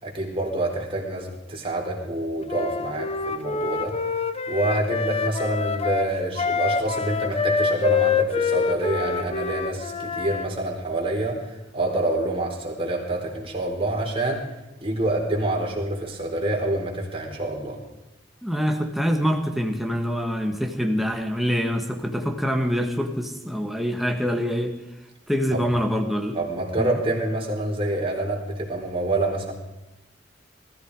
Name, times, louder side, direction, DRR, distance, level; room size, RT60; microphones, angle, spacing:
voice 1, 0.0-4.0 4.5-14.4 14.8-17.8 25.5-25.6 26.3-29.5, right 2 dB, 30° right, -1 dB, 3.9 m, -27 dB
Wind instrument woodwind instrument, 2.5-10.5, left 5 dB, 35° left, 0.8 m, -26 dB
voice 2, 18.4-24.7 25.3-26.4 26.8-26.9, equal, ahead, 3 dB, 1.6 m, -25 dB
20.0 x 14.5 x 4.8 m, 0.94 s
head